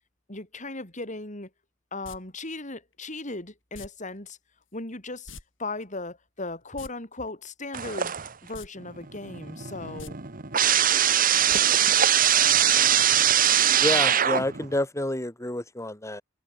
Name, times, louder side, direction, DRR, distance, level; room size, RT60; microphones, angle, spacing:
voice 1, 0.3-1.5 1.9-4.4 4.7-5.3 5.6-8.1 8.4-10.2, left 2 dB, 40° left, 7.7 m, -37 dB
sound 1, 2.0-2.2 3.7-3.9 5.3-5.4 5.7-5.8 6.6-6.9 8.5-8.7 9.1-9.2 9.9-10.1 11.5-11.6 11.9-12.0, left 4 dB, 75° left, 6.8 m, -43 dB
sound 2, 7.7-8.5 8.9-14.7, right 10 dB, 45° right, 1.4 m, -22 dB
voice 2, 13.8-16.2, left 1 dB, 15° left, 3.0 m, -28 dB
head